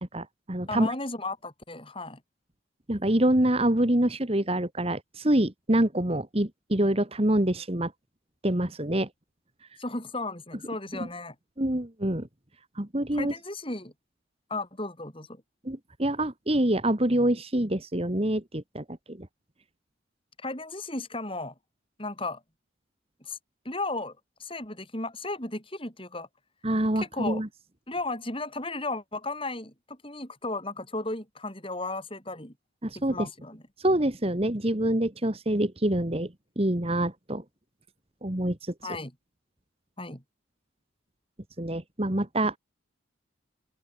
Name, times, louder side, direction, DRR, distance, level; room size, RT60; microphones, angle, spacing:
voice 1, 0.1-0.9 2.9-7.9 8.4-9.1 11.6-12.3 12.8-13.3 15.6-19.3 26.6-27.5 32.8-33.2 33.8-36.3 36.6-37.4 38.2-38.6 41.6-42.6, right 1 dB, 30° right, 1.7 m, -26 dB
voice 2, 0.7-2.2 9.8-11.3 13.1-13.9 14.5-15.4 20.4-21.5 22.0-22.4 23.2-23.4 23.6-26.3 26.9-27.4 27.9-32.5 33.1-33.6 38.8-39.1 40.0-40.2, left 2 dB, 25° left, 6.5 m, -35 dB
head